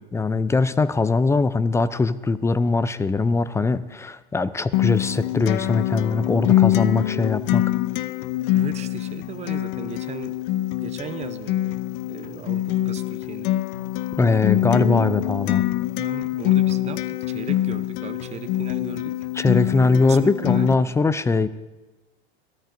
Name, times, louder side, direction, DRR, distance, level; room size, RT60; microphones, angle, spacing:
voice 1, 0.1-7.6 14.2-15.6 19.3-21.5, left 3 dB, 10° left, 16 dB, 0.4 m, -21 dB
Acoustic guitar, 4.7-20.7, left 14 dB, 55° left, 0.7 m, -24 dB
voice 2, 8.5-10.4 10.8-11.8 12.1-13.5 16.0-19.2 19.8-20.9, right 8 dB, 20° right, 10 dB, 0.7 m, -37 dB
22.5 x 13.5 x 2.6 m, 1.2 s
hypercardioid pair, 95°, 32 cm